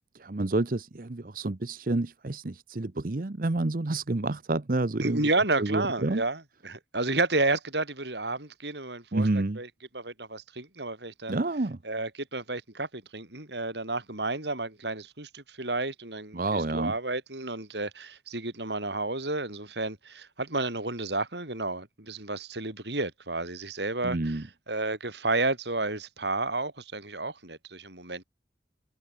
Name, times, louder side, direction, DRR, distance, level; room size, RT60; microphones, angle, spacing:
voice 1, 0.1-5.2 5.6-6.2 9.1-9.6 11.3-11.8 16.3-16.9 24.0-24.5, right 2 dB, 50° right, 0.8 m, -29 dB
voice 2, 5.0-9.7 9.9-11.4 11.8-24.4 24.7-28.2, right 2 dB, 75° right, 5.2 m, -31 dB
head